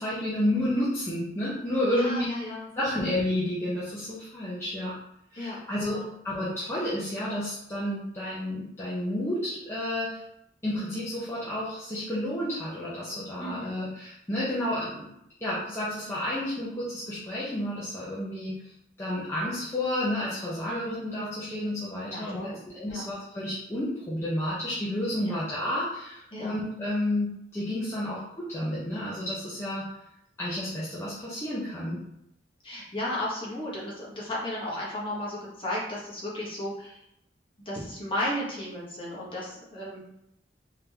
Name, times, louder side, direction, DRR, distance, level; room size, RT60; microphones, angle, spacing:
voice 1, 0.0-2.2 2.8-5.0 5.3-10.2 10.6-15.1 15.4-18.6 19.0-22.4 22.7-29.9 30.4-32.0, left 1 dB, 15° left, -9 dB, 0.8 m, -31 dB
voice 2, 1.9-2.7 5.4-6.1 13.4-13.7 20.7-21.0 22.1-22.6 22.9-23.0 25.2-25.4 26.3-26.5 32.6-36.9 37.6-40.0, left 1 dB, 30° left, -6 dB, 1.3 m, -34 dB
3.8 x 3.5 x 2.9 m, 0.76 s
head